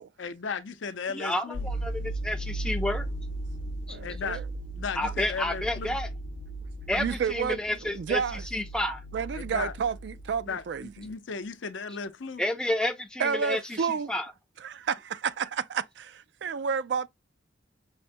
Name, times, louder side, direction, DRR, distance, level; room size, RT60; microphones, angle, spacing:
voice 1, 0.2-1.7 4.0-4.4 4.8-6.0 9.3-9.7 10.5-12.4, left 5 dB, 75° left, 0.6 m, -35 dB
voice 2, 1.1-3.1 5.0-6.1 6.9-8.2 8.5-9.0 12.4-14.3, left 1 dB, 5° left, 0.5 m, -30 dB
sound 1, 1.5-10.6 10.8-11.0, right 1 dB, 85° right, 1.1 m, -36 dB
voice 3, 7.0-8.4 9.1-10.9 13.2-14.1 14.6-16.1 16.4-17.1, right 6 dB, 60° right, 0.3 m, -30 dB
5.5 x 2.1 x 2.5 m
head